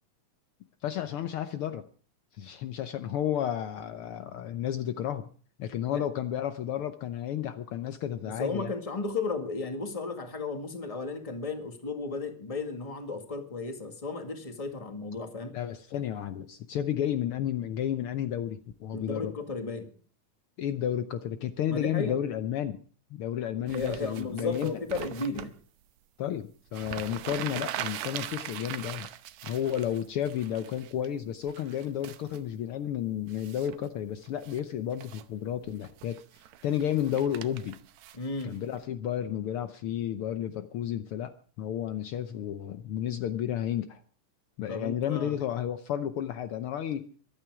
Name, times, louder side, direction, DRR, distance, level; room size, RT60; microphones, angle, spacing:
voice 1, 0.8-1.9 2.4-5.3 5.6-8.7 15.5-19.3 20.6-22.8 23.1-24.8 26.2-29.1 29.4-36.2 36.6-37.8 38.4-44.0 44.6-47.1, left 10 dB, 90° left, 9 dB, 1.2 m, -32 dB
voice 2, 8.2-15.5 18.9-19.9 21.7-22.2 23.6-25.5 38.1-38.5 44.7-45.4, left 3 dB, 15° left, 6 dB, 1.3 m, -34 dB
sound 1, 23.7-25.5 26.4-26.5 26.7-31.1 31.5-32.4 33.3-33.9 34.2-34.6 34.9-35.3 35.7-38.8, right 12 dB, 75° right, 2.0 m, -41 dB
24.0 x 9.1 x 4.8 m, 0.41 s
omnidirectional pair, 3.6 m